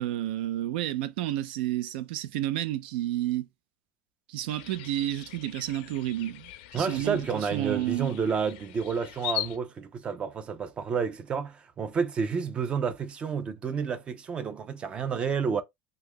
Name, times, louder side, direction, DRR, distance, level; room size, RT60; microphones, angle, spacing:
voice 1, 0.0-3.5 4.3-8.1 8.5-8.6, right 13 dB, 90° right, 0.4 m, -31 dB
sound 1, 4.5-9.6, left 13 dB, 85° left, 0.5 m, -40 dB
voice 2, 6.7-15.6, right 6 dB, 20° right, 0.3 m, -30 dB
2.8 x 2.3 x 3.5 m
cardioid pair, 165°, 5 cm